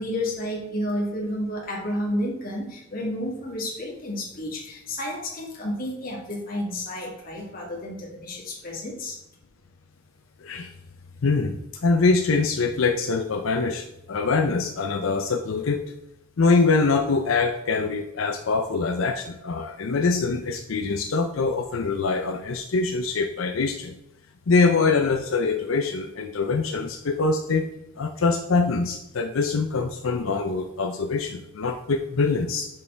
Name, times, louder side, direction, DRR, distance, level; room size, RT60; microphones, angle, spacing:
voice 1, 0.0-9.2, left 1 dB, 45° left, -3 dB, 2.0 m, -31 dB
voice 2, 11.2-15.8 16.4-23.9 24.5-27.6 28.0-32.7, left 4 dB, 90° left, 4 dB, 0.6 m, -24 dB
6.9 x 5.4 x 3.3 m, 0.85 s
head